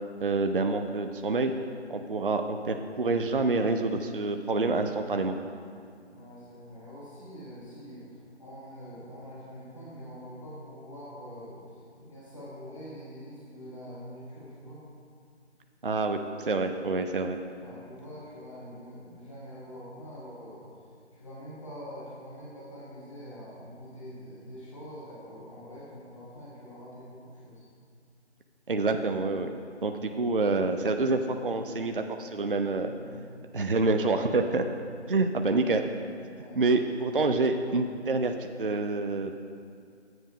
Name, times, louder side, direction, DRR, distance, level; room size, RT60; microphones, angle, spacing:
voice 1, 0.2-1.5 1.9-5.4 15.8-17.4 28.7-29.5 29.8-32.9 33.5-34.6 35.1-35.8 36.6-39.4, right 3 dB, 50° right, 6 dB, 0.4 m, -27 dB
voice 2, 6.1-14.8 17.6-20.7 21.1-27.7 32.8-33.6 34.9-35.2 36.3-36.6, equal, 25° left, -8 dB, 1.4 m, -45 dB
7.8 x 7.4 x 4.9 m, 2.2 s
figure-of-eight pair, 170°, 35 cm